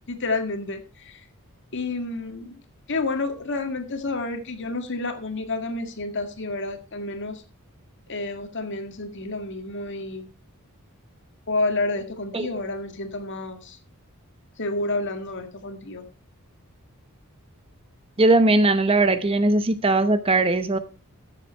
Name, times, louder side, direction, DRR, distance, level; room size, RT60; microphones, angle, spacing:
voice 1, 0.1-1.2 1.7-2.6 2.9-7.4 8.1-10.3 11.5-13.8 14.6-16.0, left 2 dB, 55° left, 1.8 m, -29 dB
voice 2, 18.2-20.8, right 2 dB, 25° right, 0.8 m, -19 dB
13.5 x 7.4 x 4.3 m
head